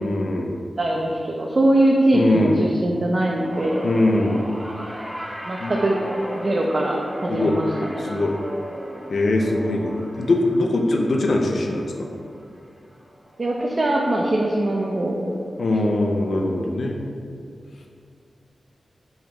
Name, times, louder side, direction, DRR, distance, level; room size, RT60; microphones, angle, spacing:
voice 1, 0.0-0.6 2.1-2.6 3.8-4.4 5.6-5.7 7.3-7.6 8.0-8.3 9.1-12.1 15.6-17.0, left 2 dB, 70° left, 1 dB, 0.5 m, -22 dB
voice 2, 0.8-3.9 5.5-6.0 6.3-8.1 13.4-15.3, right 1 dB, 45° right, -2 dB, 0.5 m, -21 dB
sound 1, 3.4-13.9 14.2-14.6 15.7-15.8, equal, ahead, 0.7 m, -37 dB
5.6 x 3.2 x 2.9 m, 2.3 s
wide cardioid pair, 80°, 0 cm